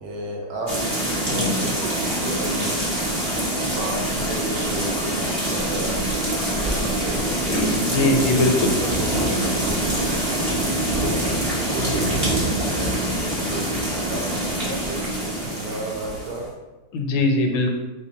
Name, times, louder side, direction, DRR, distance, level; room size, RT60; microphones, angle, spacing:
voice 1, 0.0-2.7 3.0-7.2 10.3-16.5, right 1 dB, 70° right, -1 dB, 1.1 m, -34 dB
sound 1, 0.7-16.4, right 1 dB, 35° right, 0.5 m, -24 dB
voice 2, 7.5-8.7 16.9-17.7, left 2 dB, 85° left, 3 dB, 1.4 m, -21 dB
3.3 x 3.3 x 2.8 m, 1.1 s
omnidirectional pair, 2.1 m